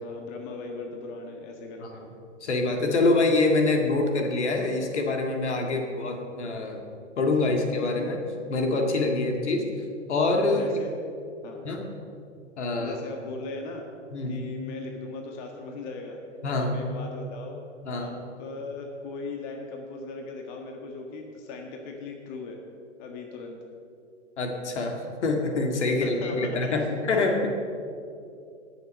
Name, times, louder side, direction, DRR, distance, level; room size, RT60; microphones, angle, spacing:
voice 1, 0.0-2.0 5.6-5.8 10.5-10.9 11.4-11.6 12.8-13.8 14.3-16.2 16.5-17.6 17.9-18.1 18.4-22.6 23.0-23.6 26.0-27.2, left 3 dB, 40° left, 2 dB, 1.7 m, -38 dB
voice 2, 2.4-6.8 7.2-8.2 8.5-9.7 10.1-10.7 11.6-11.9 12.6-13.0 14.1-14.4 16.4-16.7 17.8-18.1 24.4-27.5, left 3 dB, 65° left, 3 dB, 2.0 m, -25 dB
18.5 x 7.1 x 5.4 m, 2.5 s
figure-of-eight pair, 115°, 37 cm